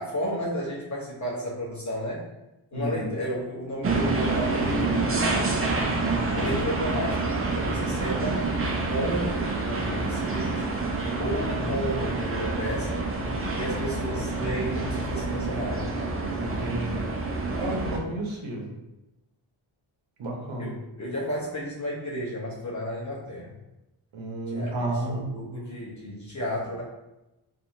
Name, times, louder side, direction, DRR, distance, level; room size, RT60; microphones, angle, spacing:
voice 1, 0.0-2.2 2.7-5.6 6.3-8.5 8.9-10.8 11.2-13.0 13.5-15.9 17.6-17.8 20.6-23.5 24.5-26.8, equal, 35° left, -6 dB, 0.9 m, -33 dB
voice 2, 2.7-3.2 6.1-6.5 7.8-8.0 11.6-11.8 16.4-18.7 20.2-20.7 24.1-25.7, right 1 dB, 65° right, 0 dB, 0.9 m, -33 dB
sound 1, 3.8-18.0, right 3 dB, 30° right, 0.5 m, -27 dB
2.7 x 2.6 x 2.6 m, 0.97 s
cardioid pair, 70°, 50 cm